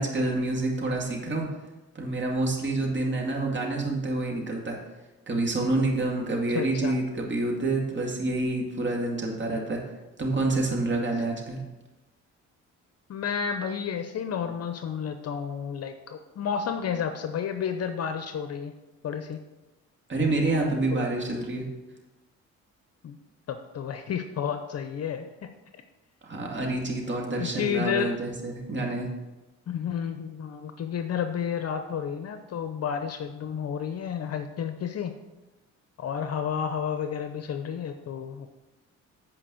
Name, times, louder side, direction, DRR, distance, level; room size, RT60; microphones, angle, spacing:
voice 1, 0.0-1.5 1.9-4.8 5.3-9.8 10.2-11.6 20.1-21.6 26.2-29.1, right 2 dB, 40° right, 0 dB, 2.3 m, -27 dB
voice 2, 6.5-7.0 13.1-18.7 19.0-19.4 20.9-21.1 23.0-23.2 23.5-25.5 27.4-28.1 29.7-35.1 36.0-38.5, left 7 dB, 55° left, 8 dB, 0.7 m, -31 dB
8.8 x 5.1 x 6.3 m, 1.1 s
cardioid pair, 90°, 30 cm